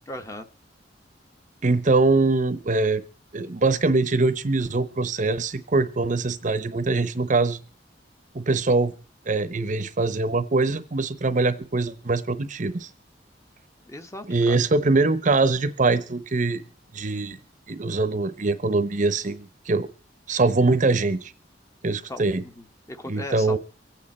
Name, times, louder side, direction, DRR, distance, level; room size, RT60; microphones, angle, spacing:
voice 1, 0.1-0.5 13.9-14.6 22.1-23.6, left 1 dB, 15° left, 7 dB, 0.9 m, -37 dB
voice 2, 1.6-3.0 3.3-7.6 8.3-8.9 9.3-12.9 14.3-16.6 16.9-17.4 17.7-19.9 20.3-21.3 21.8-22.4 23.1-23.6, right 3 dB, 45° right, 14 dB, 0.8 m, -23 dB
24.0 x 8.7 x 4.3 m, 0.40 s
head